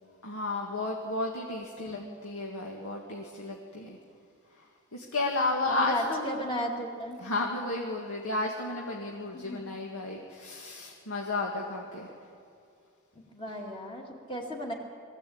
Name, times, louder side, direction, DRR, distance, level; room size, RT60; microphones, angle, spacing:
voice 1, 0.2-4.0 4.9-6.3 7.2-12.1, left 2 dB, 75° left, -1 dB, 1.9 m, -32 dB
voice 2, 5.7-7.2 9.3-9.7 13.3-14.7, equal, 20° left, -1 dB, 2.3 m, -35 dB
22.0 x 15.0 x 8.7 m, 2.4 s
head